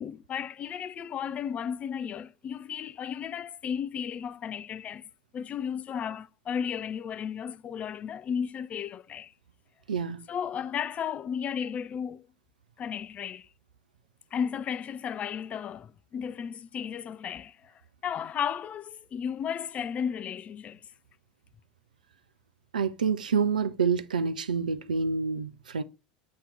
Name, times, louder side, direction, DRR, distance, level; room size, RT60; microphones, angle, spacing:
voice 1, 0.0-9.3 10.3-12.3 12.8-13.5 14.3-20.9, left 7 dB, 30° left, 0.4 m, -34 dB
voice 2, 9.9-10.3 22.7-25.8, right 5 dB, 75° right, 0.5 m, -27 dB
8.5 x 2.9 x 4.9 m
figure-of-eight pair, 70°, 4 cm